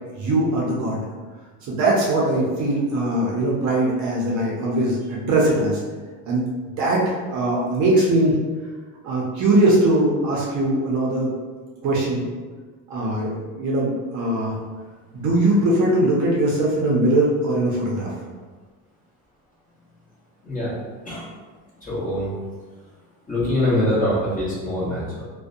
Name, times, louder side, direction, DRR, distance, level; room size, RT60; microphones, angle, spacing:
voice 1, 0.2-1.0 1.6-5.8 6.2-6.4 6.8-8.4 9.0-11.3 11.8-12.2 12.9-14.6 15.1-18.1, right 1 dB, 50° right, -4 dB, 0.6 m, -21 dB
voice 2, 21.8-22.3 23.3-25.2, left 1 dB, 20° left, -8 dB, 0.9 m, -23 dB
2.5 x 2.1 x 2.5 m, 1.4 s
cardioid pair, 140°, 39 cm